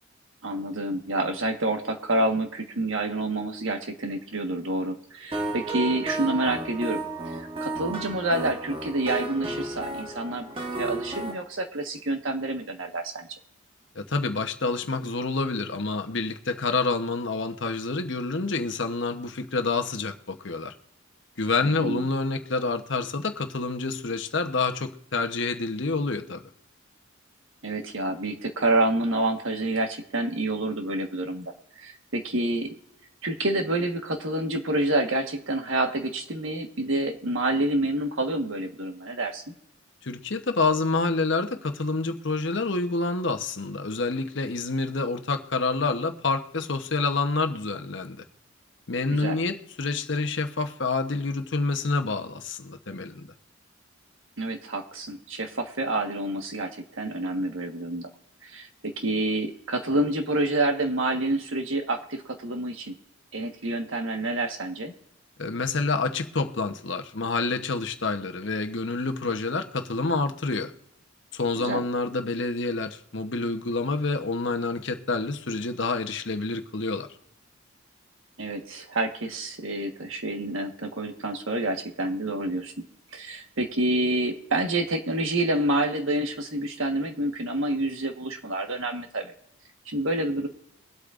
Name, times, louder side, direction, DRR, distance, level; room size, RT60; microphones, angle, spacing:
voice 1, 0.4-10.5 10.8-13.3 21.6-22.1 27.6-32.7 33.2-39.4 49.1-49.4 54.4-56.7 57.0-58.1 58.4-62.9 63.3-64.9 71.6-71.8 78.4-82.9 83.1-89.3 89.8-90.5, right 2 dB, 70° right, 1.4 m, -28 dB
sound 1, 5.3-11.3, right 2 dB, 25° right, 1.2 m, -33 dB
voice 2, 13.9-20.7 21.4-26.4 40.0-48.2 48.9-53.3 65.4-70.7 71.3-77.1, left 3 dB, 60° left, 1.0 m, -28 dB
23.0 x 8.4 x 2.5 m
head